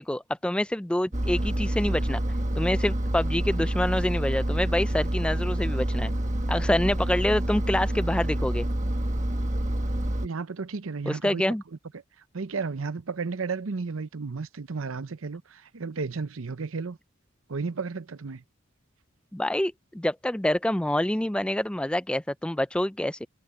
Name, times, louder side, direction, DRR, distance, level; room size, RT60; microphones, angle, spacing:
voice 1, 0.0-2.2 2.6-6.1 6.5-8.7 11.1-11.6 19.3-23.3, left 1 dB, 5° left, 0.4 m, -26 dB
Engine, 1.1-10.3, right 1 dB, 35° right, 1.3 m, -27 dB
voice 2, 10.2-11.4 12.3-17.0 17.5-18.4, right 4 dB, 80° right, 0.7 m, -33 dB
head